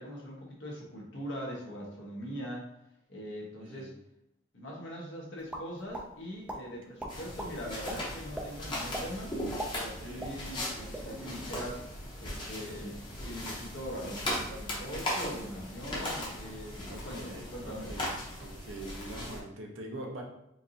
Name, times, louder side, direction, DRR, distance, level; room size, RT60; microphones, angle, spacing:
voice 1, 0.0-2.7 3.1-3.9 4.5-9.3 9.7-11.8 12.2-18.0, equal, 65° left, -3 dB, 1.1 m, -42 dB
voice 2, 3.6-4.0 9.7-10.3 16.9-18.1 18.4-20.2, right 1 dB, 85° right, 1 dB, 0.8 m, -44 dB
sound 1, 5.5-6.1 6.5-6.6 7.0-7.5 7.9-8.0 8.3-8.5 8.9-9.1 9.4-10.7 10.9-11.1 11.4-11.8, right 1 dB, 5° right, 0.4 m, -38 dB
sound 2, 7.1-19.4, left 1 dB, 25° left, 0.9 m, -38 dB
4.5 x 2.6 x 2.8 m, 0.81 s
head